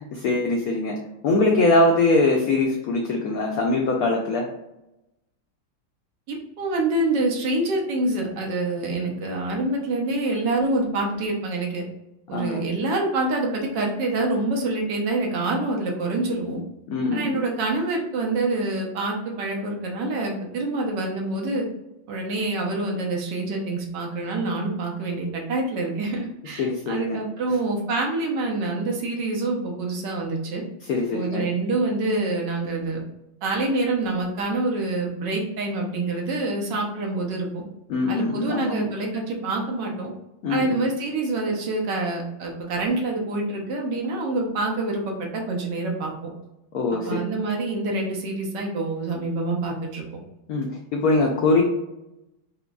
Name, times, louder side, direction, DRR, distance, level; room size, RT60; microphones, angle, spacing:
voice 1, 0.1-1.0 1.2-4.5 12.3-12.6 16.9-17.4 26.6-27.2 30.9-31.4 37.9-38.9 40.4-40.9 46.7-47.2 50.5-51.6, left 2 dB, 85° left, 0 dB, 0.8 m, -22 dB
voice 2, 6.3-11.8 12.3-16.6 17.1-21.7 22.1-30.6 31.1-33.0 33.4-37.6 38.1-40.1 40.5-46.1 47.0-50.0, right 2 dB, 70° right, 0 dB, 1.3 m, -26 dB
5.0 x 2.2 x 2.3 m, 0.91 s
omnidirectional pair, 2.1 m